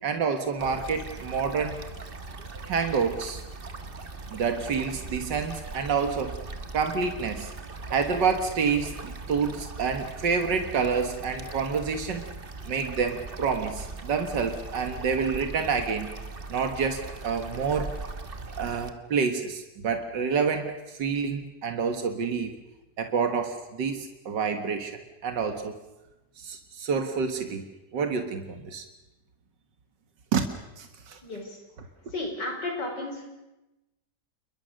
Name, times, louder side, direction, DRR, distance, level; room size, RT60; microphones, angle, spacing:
voice 1, 0.0-1.8 2.7-3.4 4.3-6.4 6.7-7.5 7.9-12.3 12.7-16.1 16.5-17.9 18.5-22.5 23.0-25.7 26.4-27.6 27.9-28.8 30.3-30.4 30.8-31.2, right 5 dB, 90° right, 6 dB, 2.2 m, -28 dB
sound 1, 0.6-18.9, right 3 dB, 35° right, 1.6 m, -40 dB
voice 2, 31.2-31.6 32.1-33.2, left 2 dB, 80° left, 2 dB, 5.7 m, -33 dB
29.0 x 22.0 x 6.5 m, 0.99 s
omnidirectional pair, 1.8 m